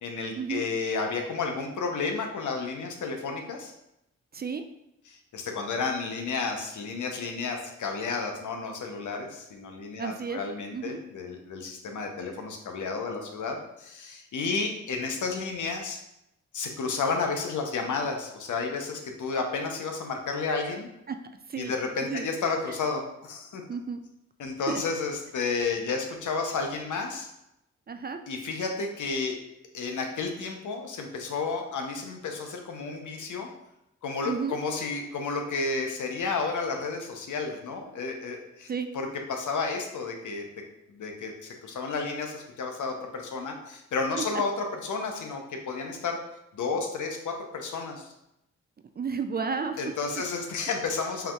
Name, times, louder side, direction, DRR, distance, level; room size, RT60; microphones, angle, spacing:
voice 1, 0.0-3.7 5.1-16.0 16.5-20.9 21.6-23.6 24.4-27.3 28.3-29.4 29.7-33.5 34.0-38.7 38.9-40.4 40.9-46.2 46.5-48.1 49.8-51.3, left 4 dB, 65° left, 3 dB, 0.8 m, -32 dB
voice 2, 10.0-10.4 10.7-11.0 21.1-21.2 21.5-22.3 23.7-24.0 24.7-24.8 27.9-28.2 34.2-34.6 38.7-38.9 49.0-49.8, right 5 dB, 30° right, 8 dB, 0.4 m, -32 dB
5.6 x 2.8 x 2.4 m, 0.85 s
supercardioid pair, 45°, 32 cm